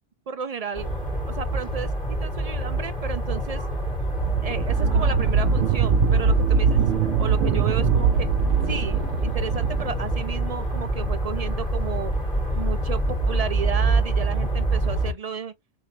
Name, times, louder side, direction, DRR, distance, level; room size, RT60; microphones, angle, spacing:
voice 1, 0.3-0.9 1.3-1.9 2.2-3.6 4.4-8.3 8.7-12.1 12.5-15.5, right 6 dB, 55° right, 0.4 m, -33 dB
sound 1, 0.7-15.1, right 2 dB, 50° left, 2.5 m, -26 dB
sound 2, 4.1-10.5, right 6 dB, 90° right, 0.9 m, -22 dB
6.9 x 2.8 x 2.7 m
omnidirectional pair, 1.1 m